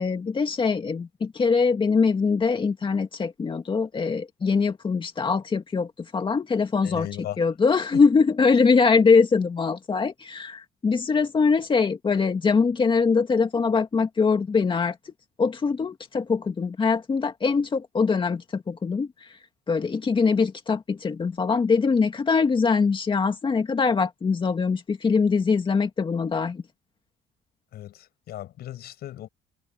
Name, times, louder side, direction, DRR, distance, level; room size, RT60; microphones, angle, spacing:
voice 1, 0.0-7.1 7.4-15.1 15.4-19.4 19.7-26.6, left 5 dB, 30° left, 2.1 m, -23 dB
voice 2, 6.8-7.5 7.9-8.0 27.7-29.3, left 13 dB, 70° left, 7.6 m, -37 dB
cardioid pair, 110°, 17 cm